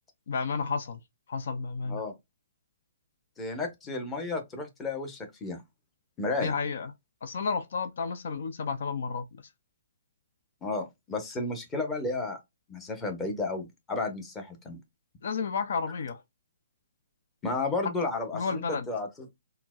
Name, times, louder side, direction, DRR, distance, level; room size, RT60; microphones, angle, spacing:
voice 1, 0.3-1.0 1.3-2.0 6.4-6.9 7.2-9.5 15.2-16.2 17.8-18.9, left 5 dB, 65° left, 0.4 m, -32 dB
voice 2, 3.4-5.6 6.2-6.5 10.6-12.4 12.7-14.8 17.4-19.1, left 3 dB, 15° left, 0.9 m, -32 dB
4.3 x 2.1 x 2.2 m
hypercardioid pair, 140°, 0 cm